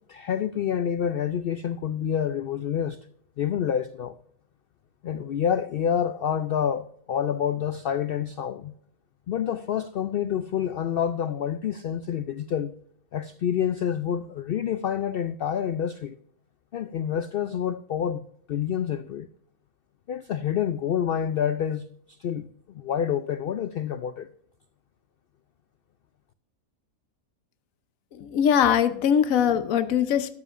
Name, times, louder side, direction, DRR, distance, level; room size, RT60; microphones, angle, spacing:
voice 1, 0.1-3.1 3.4-4.2 5.0-8.7 9.3-12.8 13.1-16.2 16.7-19.3 20.1-24.3, left 8 dB, 85° left, 0.5 m, -28 dB
voice 2, 28.2-30.3, left 8 dB, 70° left, 1.2 m, -21 dB
13.0 x 12.5 x 2.5 m
omnidirectional pair, 1.5 m